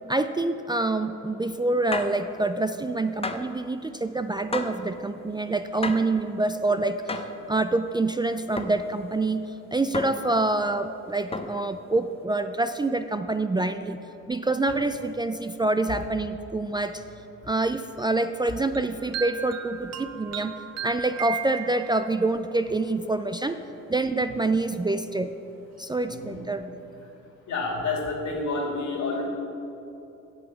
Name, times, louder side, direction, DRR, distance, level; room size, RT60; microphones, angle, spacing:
voice 1, 0.1-7.0 7.5-14.0 14.3-17.0 17.5-20.5 20.8-23.6 23.9-25.3 25.8-26.8, right 2 dB, 15° right, 9 dB, 0.3 m, -26 dB
sound 1, 1.9-2.2 3.2-3.6 4.5-4.9 5.8-6.2 7.1-7.4 8.6-8.8 9.9-10.3 11.3-11.7, left 3 dB, 20° left, 0.7 m, -32 dB
sound 2, 18.7-22.2, right 8 dB, 60° right, 0.6 m, -35 dB
voice 2, 26.0-26.4 27.5-29.3, left 3 dB, 70° left, 0 dB, 2.5 m, -29 dB
8.4 x 7.8 x 7.0 m, 2.9 s
cardioid pair, 90°, 30 cm